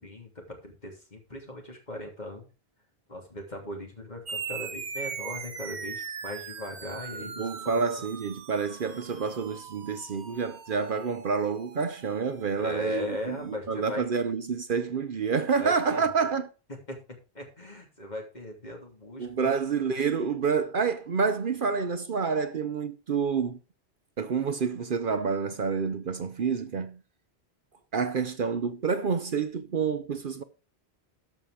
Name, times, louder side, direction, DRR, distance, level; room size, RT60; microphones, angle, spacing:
voice 1, 0.0-2.5 3.1-7.8 12.6-14.1 15.6-16.0 16.9-17.0 17.3-19.5, left 1 dB, 40° left, 3.1 m, -38 dB
sound 1, 4.3-13.2, right 6 dB, 80° right, 1.3 m, -40 dB
voice 2, 7.4-16.5 19.2-23.6 24.2-27.0 27.9-30.4, right 5 dB, 55° right, 0.9 m, -28 dB
13.5 x 5.7 x 4.9 m
omnidirectional pair, 1.1 m